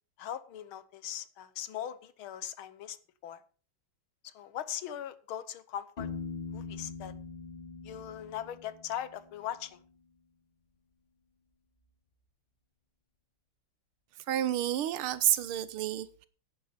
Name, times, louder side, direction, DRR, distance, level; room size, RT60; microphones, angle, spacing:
voice 1, 0.2-3.0 3.2-3.4 4.2-6.1 6.5-7.1 7.8-9.8, left 10 dB, 80° left, 1.8 m, -40 dB
Piano, 6.0-9.7, left 4 dB, 25° left, 2.6 m, -42 dB
voice 2, 14.3-16.3, right 12 dB, 90° right, 1.8 m, -30 dB
10.5 x 10.0 x 5.2 m
omnidirectional pair, 2.3 m